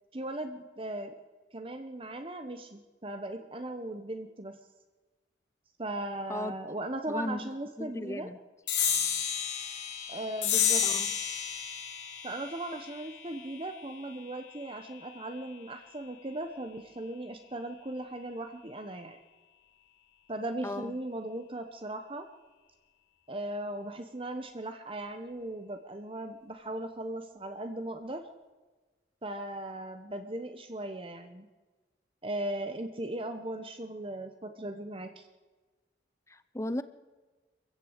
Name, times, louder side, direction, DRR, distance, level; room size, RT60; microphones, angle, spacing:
voice 1, 0.1-1.1 1.5-4.6 5.8-8.3 10.1-10.8 12.2-19.2 20.3-22.3 23.3-28.2 29.2-31.5 32.2-35.2, right 1 dB, 30° right, 7 dB, 1.1 m, -38 dB
voice 2, 7.1-7.4 7.8-8.4 10.8-11.1 20.6-20.9 36.3-36.8, left 1 dB, 15° left, 13 dB, 0.7 m, -35 dB
sound 1, 8.7-15.5, left 8 dB, 85° left, 4.2 m, -32 dB
24.0 x 15.0 x 8.2 m, 1.3 s
head